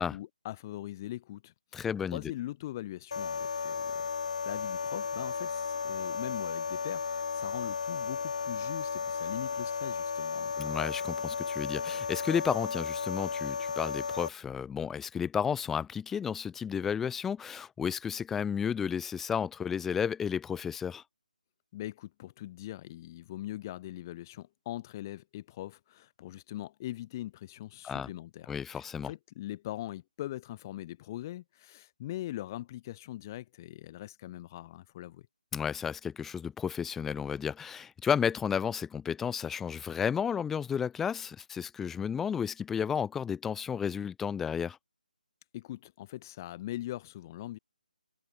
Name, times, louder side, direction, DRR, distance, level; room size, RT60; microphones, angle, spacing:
voice 1, 0.0-4.1 4.4-10.5 21.7-35.2 45.5-47.6, left 14 dB, 25° left, 1.1 m, -41 dB
voice 2, 1.7-2.2 10.6-21.0 27.8-28.1 28.5-29.1 35.5-44.8, left 7 dB, 5° left, 0.4 m, -32 dB
sound 1, 3.1-14.3, left 5 dB, 50° left, 1.9 m, -34 dB
figure-of-eight pair, 150°, 5 cm